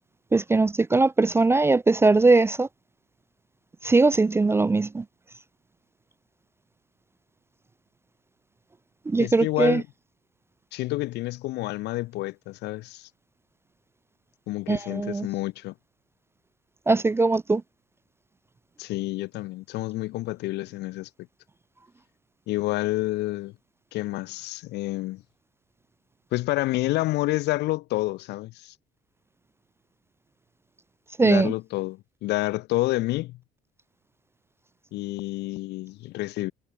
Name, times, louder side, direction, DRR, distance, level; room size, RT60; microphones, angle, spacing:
voice 1, 0.3-2.7 3.8-5.0 9.1-9.8 14.7-15.3 16.9-17.6 31.2-31.5, right 3 dB, 15° right, 0.4 m, -20 dB
voice 2, 9.1-9.9 10.7-13.1 14.5-15.7 18.8-21.1 22.5-23.5 23.9-25.2 26.3-28.7 31.2-33.4 34.9-36.5, left 18 dB, 85° left, 7.6 m, -29 dB
cardioid pair, 110°, 17 cm